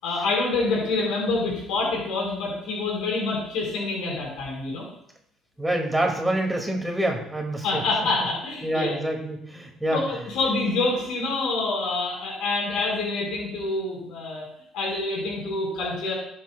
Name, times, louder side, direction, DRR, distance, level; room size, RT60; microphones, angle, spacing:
voice 1, 0.0-4.8 7.6-8.9 9.9-14.5 14.7-16.1, left 3 dB, 75° left, -3 dB, 4.3 m, -26 dB
voice 2, 5.6-7.8 8.6-10.0, right 1 dB, 5° right, 1 dB, 2.0 m, -26 dB
20.0 x 7.5 x 2.2 m, 0.73 s
cardioid pair, 145°, 0 cm